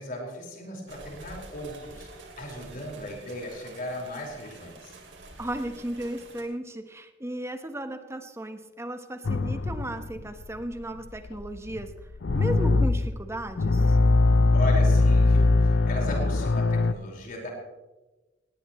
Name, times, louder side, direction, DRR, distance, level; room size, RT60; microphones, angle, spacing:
voice 1, 0.0-2.1 2.4-5.0 14.5-17.5, left 1 dB, 50° left, -1 dB, 5.0 m, -36 dB
sound 1, 0.9-6.4, right 2 dB, 90° right, 3.0 m, -47 dB
voice 2, 5.4-11.9 12.3-14.0, right 1 dB, 15° right, 8 dB, 1.2 m, -35 dB
sound 2, 9.2-16.9, left 2 dB, 80° left, 0.7 m, -22 dB
19.0 x 18.0 x 3.1 m, 1.1 s
head